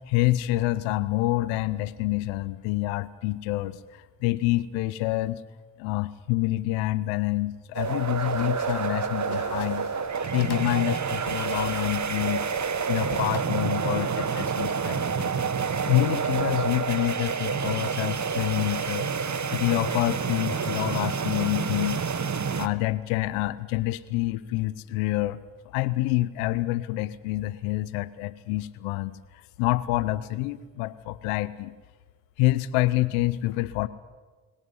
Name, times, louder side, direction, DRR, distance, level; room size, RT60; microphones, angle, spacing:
voice 1, 0.1-5.4 5.8-9.9 10.3-12.4 12.9-15.4 15.9-19.1 19.5-22.0 22.6-25.4 25.7-31.7 32.4-33.9, left 17 dB, 90° left, 17 dB, 0.8 m, -27 dB
sound 1, 7.7-13.4, left 9 dB, 60° left, 1.4 m, -46 dB
sound 2, 7.7-22.7, right 6 dB, 40° right, 1.5 m, -28 dB
21.0 x 17.5 x 9.6 m, 1.4 s
hypercardioid pair, 45°, 44 cm